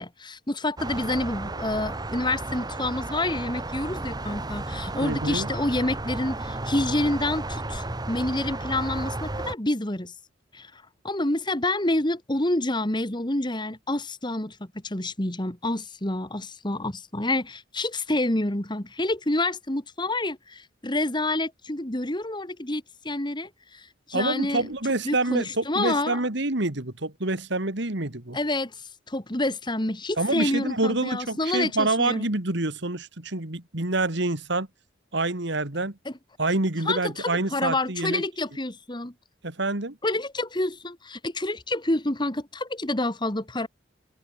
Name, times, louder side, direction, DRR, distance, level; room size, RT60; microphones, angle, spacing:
voice 1, 0.0-10.1 10.5-24.7 25.0-26.2 28.3-32.3 36.1-36.2 36.9-39.1 40.0-43.7, left 2 dB, 25° left, 2.0 m, -28 dB
sound 1, 0.8-9.5, right 2 dB, 20° right, 1.2 m, -33 dB
voice 2, 5.0-5.5 24.1-28.4 30.2-34.7 35.1-36.0 36.4-38.2 39.4-40.0, right 2 dB, 60° right, 2.3 m, -27 dB
head